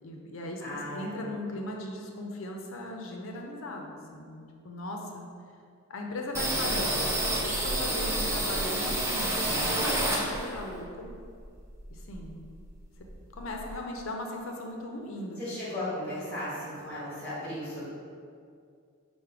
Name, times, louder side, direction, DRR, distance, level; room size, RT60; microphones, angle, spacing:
voice 1, 0.0-5.3 5.9-7.1 7.4-11.1 11.9-12.5 13.4-15.4, left 1 dB, 65° left, 1 dB, 0.5 m, -38 dB
voice 2, 0.6-1.3 6.5-7.0 15.4-17.9, left 1 dB, 10° left, -9 dB, 1.4 m, -36 dB
sound 1, 6.3-10.7 11.0-12.4 12.7-12.8 13.1-13.8, right 1 dB, 10° right, 0.4 m, -29 dB
4.9 x 2.1 x 4.6 m, 2.3 s
head